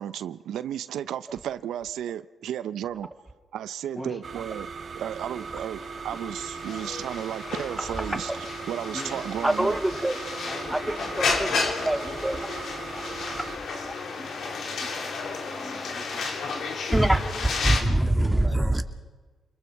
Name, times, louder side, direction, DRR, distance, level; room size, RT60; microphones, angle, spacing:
voice 1, 0.0-3.1 3.5-4.7 4.9-9.8, right 10 dB, 85° right, 0.6 m, -33 dB
sound 1, 4.2-13.6, right 5 dB, 60° right, 1.3 m, -39 dB
sound 2, 5.4-17.8, left 4 dB, 70° left, 2.8 m, -32 dB
voice 2, 8.9-9.3 10.4-11.1 11.5-13.6 14.2-18.8, left 1 dB, 30° left, 6.6 m, -43 dB
voice 3, 9.4-10.2 10.7-11.5 11.9-12.0 12.2-12.4 16.9-18.8, right 1 dB, 10° right, 2.0 m, -24 dB
29.0 x 21.5 x 4.6 m
supercardioid pair, 55°, 0 cm